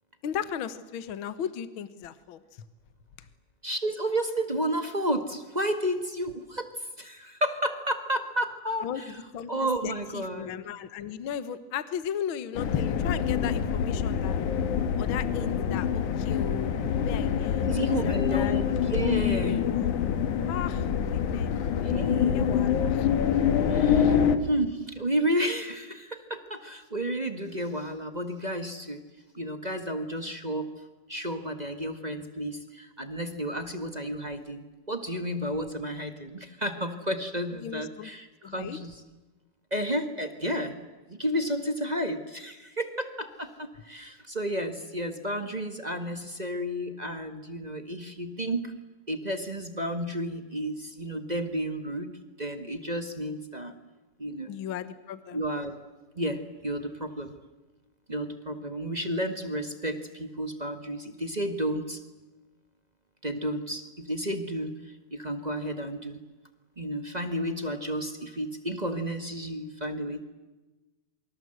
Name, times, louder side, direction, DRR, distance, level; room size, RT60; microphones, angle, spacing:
voice 1, 0.2-2.4 8.8-14.4 15.0-16.7 17.0-17.7 18.0-18.6 19.1-19.9 20.5-21.6 22.0-23.1 24.0-24.2 37.6-38.1 38.4-38.8 54.5-55.4, left 9 dB, 55° left, 13 dB, 1.6 m, -36 dB
voice 2, 3.6-9.2 9.5-10.6 17.6-19.6 21.8-22.9 23.7-29.0 29.3-30.7 31.1-39.0 39.7-48.7 49.1-53.7 54.2-54.5 55.3-55.8 56.2-57.3 58.1-62.0 63.2-66.2 66.8-70.2, right 1 dB, 20° right, 7 dB, 1.1 m, -32 dB
sound 1, 12.5-24.4, left 8 dB, 85° left, 3.1 m, -26 dB
28.0 x 24.5 x 8.0 m, 1.1 s
omnidirectional pair, 3.4 m